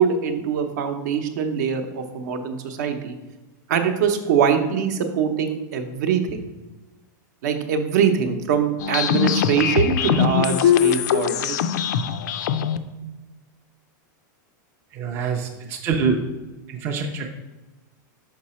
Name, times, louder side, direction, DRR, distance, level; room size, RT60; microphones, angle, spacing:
voice 1, 0.0-3.2 3.7-6.4 7.4-11.6, right 7 dB, 60° right, 7 dB, 0.8 m, -23 dB
sound 1, 8.8-12.8, left 8 dB, 65° left, 0.4 m, -21 dB
voice 2, 14.9-16.3 16.7-17.3, right 5 dB, 20° right, 2 dB, 0.4 m, -25 dB
6.0 x 4.8 x 4.2 m, 1.1 s
supercardioid pair, 170°, 10 cm